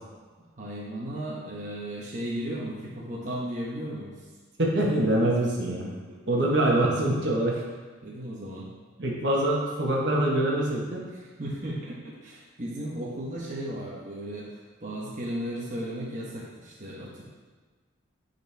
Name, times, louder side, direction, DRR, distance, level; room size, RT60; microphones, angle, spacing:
voice 1, 0.6-4.3 6.1-6.2 8.0-8.7 11.4-14.5 14.8-17.2, right 1 dB, 40° right, -5 dB, 1.1 m, -35 dB
voice 2, 4.6-5.9 6.3-7.6 9.0-11.0, right 1 dB, 60° right, -2 dB, 1.2 m, -24 dB
9.8 x 4.3 x 3.4 m, 1.4 s
head